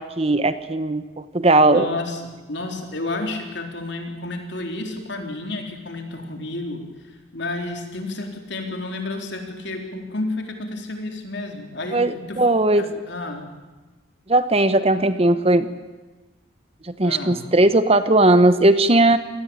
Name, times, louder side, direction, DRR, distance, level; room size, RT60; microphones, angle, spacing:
voice 1, 0.0-1.9 11.9-12.9 14.3-15.7 16.8-19.2, right 2 dB, 30° right, 12 dB, 1.0 m, -18 dB
voice 2, 1.6-2.2 2.5-12.4 12.8-13.5 17.0-17.5, left 2 dB, 55° left, 4 dB, 4.0 m, -31 dB
27.5 x 19.5 x 9.0 m, 1.2 s
head